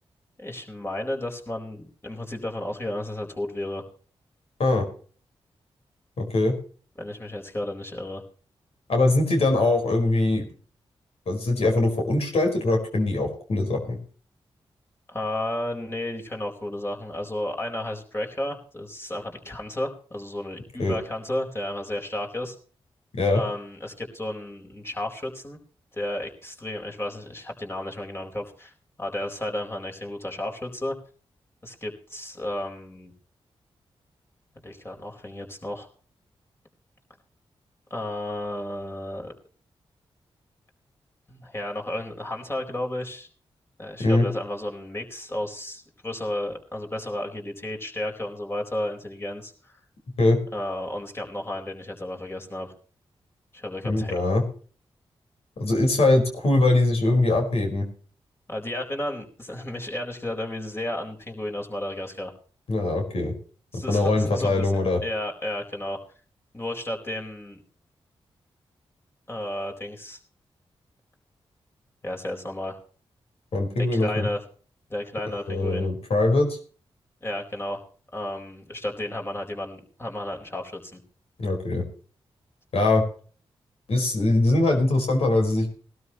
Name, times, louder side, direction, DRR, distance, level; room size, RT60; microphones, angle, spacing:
voice 1, 0.4-3.8 7.0-8.2 15.1-22.6 23.3-25.6 25.9-28.7 29.0-31.0 31.6-33.1 34.6-35.9 37.9-39.3 41.3-43.3 43.8-49.8 50.5-52.7 53.5-54.3 58.5-62.3 63.7-64.7 65.0-66.0 66.5-67.6 69.3-70.2 72.0-72.8 73.8-74.4 74.9-75.9 77.2-77.8 78.1-81.0, left 1 dB, 25° left, 1 dB, 4.5 m, -33 dB
voice 2, 6.2-6.6 8.9-10.5 11.3-14.0 20.8-21.0 23.1-23.4 44.0-44.3 50.2-50.4 53.8-54.4 55.6-57.9 62.7-63.3 63.7-65.0 73.5-74.3 75.3-76.6 81.4-81.8 82.7-83.0 83.9-85.7, left 2 dB, 70° left, 2 dB, 4.7 m, -22 dB
20.0 x 12.5 x 3.1 m, 0.42 s
cardioid pair, 50°, 10 cm